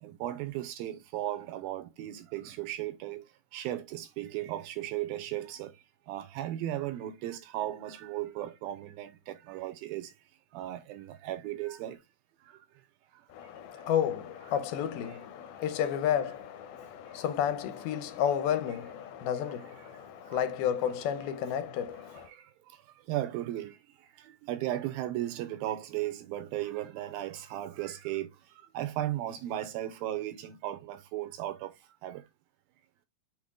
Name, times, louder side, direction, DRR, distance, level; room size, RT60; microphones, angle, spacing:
voice 1, 0.0-3.2 3.5-5.7 6.1-10.1 10.5-12.0 15.1-15.2 19.6-19.9 20.3-20.4 22.1-22.4 23.1-23.8 24.2-28.3 28.7-31.7 32.0-32.2, right 13 dB, 80° right, 2.4 m, -36 dB
voice 2, 13.3-22.3, left 9 dB, 80° left, 2.6 m, -31 dB
6.4 x 4.2 x 3.6 m
omnidirectional pair, 4.5 m